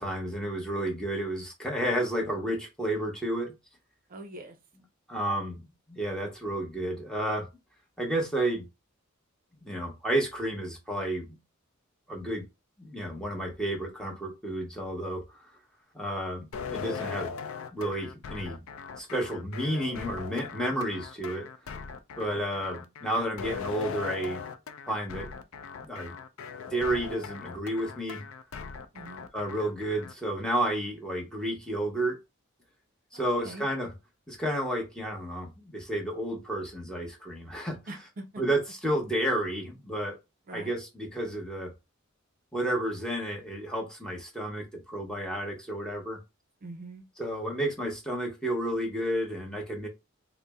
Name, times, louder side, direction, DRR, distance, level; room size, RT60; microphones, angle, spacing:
voice 1, 0.0-3.5 5.1-7.5 8.0-8.7 9.6-11.3 12.1-12.4 12.8-15.2 15.9-17.3 17.7-18.7 19.0-21.5 22.2-24.4 24.9-25.3 25.8-26.1 26.7-28.3 29.3-32.2 33.1-33.9 34.3-37.8 38.4-40.1 40.5-41.7 42.5-46.2 47.2-49.9, right 1 dB, 5° left, 0.9 m, -31 dB
voice 2, 4.1-4.6 28.9-29.3 33.1-33.7 37.9-38.4 40.5-40.7 46.6-47.0, right 2 dB, 45° right, 0.5 m, -43 dB
sound 1, 16.5-30.1, left 5 dB, 75° left, 0.5 m, -40 dB
4.0 x 2.0 x 3.4 m
head